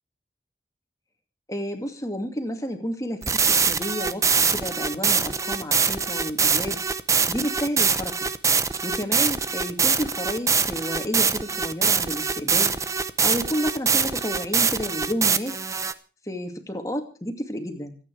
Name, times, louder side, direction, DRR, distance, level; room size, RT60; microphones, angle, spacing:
voice 1, 1.5-6.8 7.3-8.3 8.8-12.7 13.2-15.6 16.2-18.0, equal, 20° left, 5 dB, 2.4 m, -31 dB
sound 1, 3.2-15.9, right 5 dB, 20° right, 0.7 m, -23 dB
25.5 x 9.4 x 4.8 m, 0.38 s
head